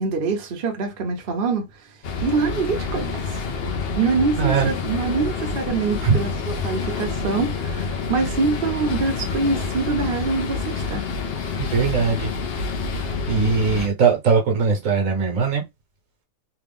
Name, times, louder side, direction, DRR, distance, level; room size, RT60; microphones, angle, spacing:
voice 1, 0.0-1.9 2.2-3.4 4.0-11.1, right 4 dB, 50° right, 0.8 m, -25 dB
sound 1, 2.0-13.9, left 4 dB, 55° left, 0.7 m, -28 dB
voice 2, 4.4-4.7 6.0-6.2 11.6-12.3 13.3-15.6, right 5 dB, 70° right, 1.4 m, -20 dB
3.4 x 2.3 x 3.4 m
omnidirectional pair, 1.5 m